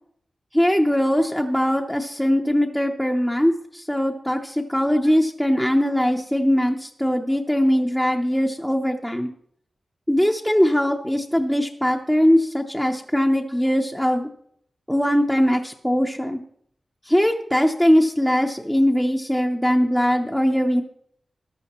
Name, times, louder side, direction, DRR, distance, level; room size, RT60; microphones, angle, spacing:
voice 1, 0.5-9.3 10.1-14.3 14.9-16.4 17.1-20.8, equal, 5° left, 1 dB, 0.8 m, -21 dB
14.0 x 11.5 x 3.0 m, 0.66 s
wide cardioid pair, 95°, 0 cm